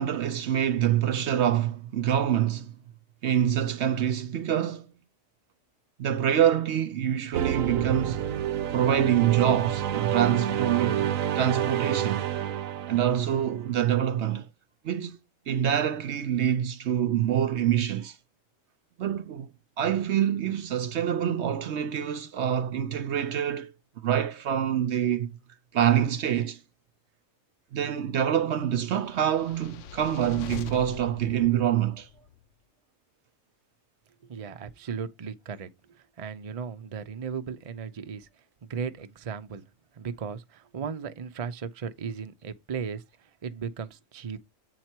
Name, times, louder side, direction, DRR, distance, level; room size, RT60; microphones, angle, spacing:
voice 1, 0.0-2.7 3.2-4.9 6.0-8.2 8.7-12.3 12.9-14.5 14.8-15.2 15.5-18.2 19.0-19.5 19.8-23.7 24.0-25.3 25.7-26.6 27.7-32.1, right 10 dB, 65° right, 0.8 m, -26 dB
sound 1, 7.3-13.8, right 10 dB, 85° right, 1.1 m, -29 dB
sound 2, 29.0-32.4, left 10 dB, 70° left, 1.0 m, -42 dB
voice 2, 34.2-38.3 38.6-39.7 39.9-44.4, right 6 dB, 35° right, 0.6 m, -36 dB
8.1 x 4.5 x 4.5 m
omnidirectional pair, 1.4 m